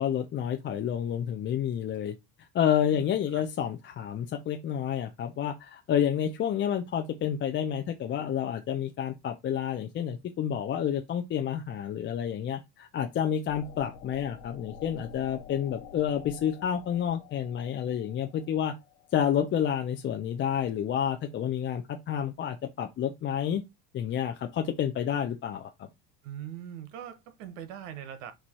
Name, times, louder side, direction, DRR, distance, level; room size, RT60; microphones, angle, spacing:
voice 1, 0.0-2.1 2.5-18.7 19.1-23.6 23.9-25.9, left 9 dB, 30° left, 0.5 m, -29 dB
voice 2, 2.9-3.4 26.2-28.3, right 10 dB, 85° right, 0.9 m, -42 dB
sound 1, 13.5-20.1, left 7 dB, 80° left, 1.1 m, -49 dB
4.6 x 2.5 x 4.2 m
supercardioid pair, 115°, 37 cm